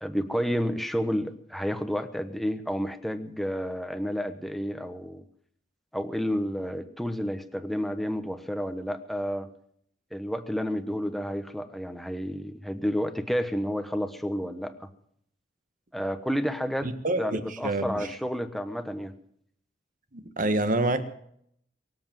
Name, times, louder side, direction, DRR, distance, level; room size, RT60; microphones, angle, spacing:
voice 1, 0.0-5.2 5.9-9.5 10.1-14.9 15.9-16.9 17.2-19.1, equal, ahead, 1.1 m, -30 dB
voice 2, 16.8-18.1 20.1-21.0, right 2 dB, 45° right, 1.5 m, -27 dB
23.0 x 8.0 x 7.5 m
head